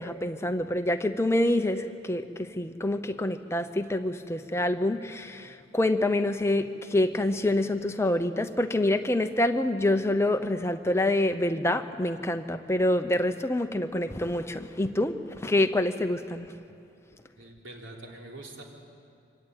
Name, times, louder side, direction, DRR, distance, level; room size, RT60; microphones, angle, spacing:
voice 1, 0.0-16.5, left 1 dB, 15° left, 8 dB, 0.8 m, -26 dB
voice 2, 17.4-18.6, right 2 dB, 90° right, 0 dB, 3.4 m, -44 dB
24.5 x 16.5 x 9.2 m, 2.6 s
head